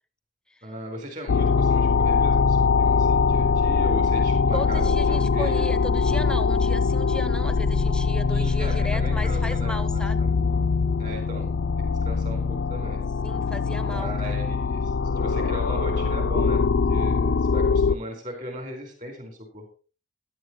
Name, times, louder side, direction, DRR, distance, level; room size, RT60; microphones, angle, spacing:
voice 1, 0.6-5.7 8.3-10.3 11.0-11.5 12.0-13.0 13.8-16.6 16.9-19.7, equal, 40° right, 3 dB, 4.3 m, -37 dB
sound 1, 1.3-18.0, left 5 dB, 70° left, 0.4 m, -22 dB
voice 2, 4.5-10.2 13.2-14.4, left 1 dB, 5° left, 11 dB, 0.6 m, -35 dB
15.0 x 11.0 x 3.1 m, 0.36 s
head